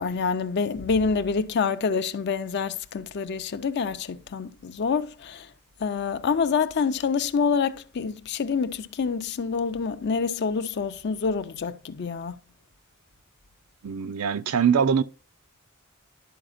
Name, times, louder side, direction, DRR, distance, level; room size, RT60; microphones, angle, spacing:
voice 1, 0.0-5.5 5.8-12.4, left 5 dB, 50° left, 0.5 m, -27 dB
voice 2, 13.8-15.0, right 7 dB, 80° right, 0.5 m, -22 dB
12.0 x 5.0 x 2.5 m
head